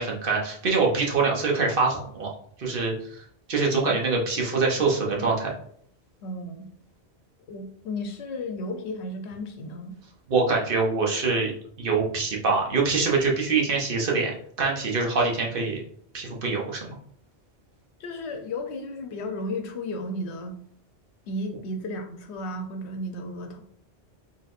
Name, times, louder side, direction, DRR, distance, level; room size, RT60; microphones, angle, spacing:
voice 1, 0.0-2.3 2.6-5.5 10.3-14.3 14.6-15.8 16.1-16.9, right 4 dB, 55° right, -1 dB, 1.0 m, -24 dB
voice 2, 6.2-6.7 7.5-10.0 18.0-20.6 21.3-23.6, left 1 dB, 85° left, 5 dB, 0.9 m, -34 dB
4.0 x 3.6 x 2.5 m, 0.63 s
omnidirectional pair, 1.1 m